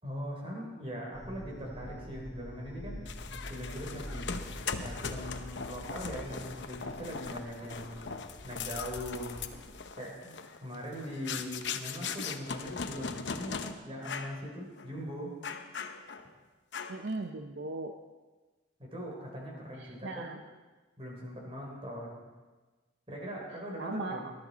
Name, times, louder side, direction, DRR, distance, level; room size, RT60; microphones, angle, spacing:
voice 1, 0.0-3.0 3.5-4.3 4.8-8.0 8.4-9.4 10.0-15.4 18.8-20.3 21.0-22.2 23.1-24.3, equal, 30° right, -2 dB, 3.7 m, -41 dB
sound 1, 1.1-9.7, equal, 20° left, 2.0 m, -46 dB
sound 2, 3.1-13.7 14.0-14.4 14.8-14.9 15.4-16.3 16.7-17.1, left 5 dB, 70° left, 0.8 m, -39 dB
voice 2, 16.9-18.0 19.8-20.4 23.8-24.3, right 2 dB, 70° right, 5 dB, 0.7 m, -38 dB
19.5 x 11.5 x 4.1 m, 1.3 s
head